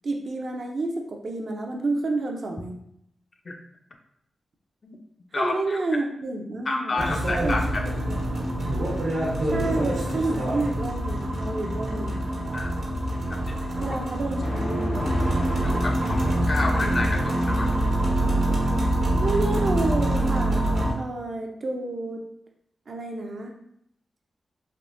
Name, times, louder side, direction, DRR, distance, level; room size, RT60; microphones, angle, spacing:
voice 1, 0.0-2.8 5.4-7.0 7.4-8.4 9.5-12.2 13.8-15.3 19.2-22.2 22.9-23.6, right 2 dB, 55° right, 2 dB, 0.5 m, -30 dB
voice 2, 5.3-5.8 6.7-7.8 12.5-12.7 13.1-13.9 15.6-17.8, left 2 dB, 40° left, 4 dB, 0.4 m, -30 dB
sound 1, 7.0-20.9, right 1 dB, 70° right, 0.9 m, -25 dB
sound 2, 14.4-16.8, equal, 90° left, 1.0 m, -34 dB
3.5 x 2.7 x 2.5 m, 0.73 s
wide cardioid pair, 125°, 0 cm